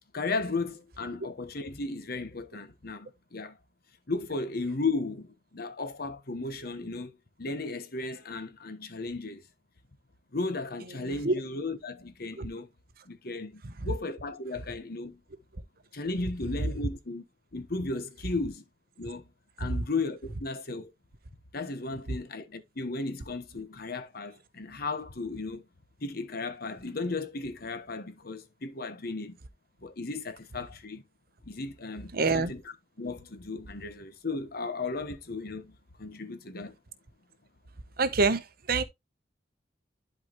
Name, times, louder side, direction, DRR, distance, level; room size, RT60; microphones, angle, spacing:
voice 1, 0.1-3.6 4.1-9.4 10.3-12.7 13.0-15.2 15.9-17.2 17.5-18.6 19.0-19.3 19.6-20.9 21.5-25.6 26.0-29.4 29.8-31.0 31.4-32.6 33.0-36.8, left 3 dB, 60° left, 1.2 m, -35 dB
voice 2, 11.0-11.3 12.4-12.5 13.6-13.9 19.6-19.8 32.1-32.5 38.0-38.8, right 3 dB, 55° right, 0.9 m, -27 dB
11.0 x 4.7 x 3.1 m
head